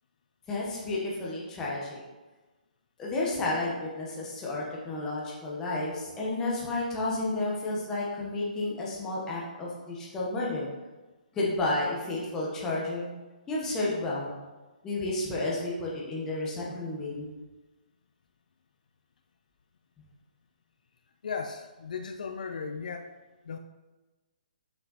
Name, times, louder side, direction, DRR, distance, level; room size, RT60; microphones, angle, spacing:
voice 1, 0.5-2.0 3.0-10.7 11.3-13.1 13.5-14.4 14.8-17.3, left 2 dB, 10° left, -5 dB, 1.1 m, -31 dB
voice 2, 21.2-23.1 23.4-23.6, left 5 dB, 55° left, 5 dB, 0.5 m, -36 dB
6.1 x 5.5 x 4.1 m, 1.2 s
hypercardioid pair, 170°, 5 cm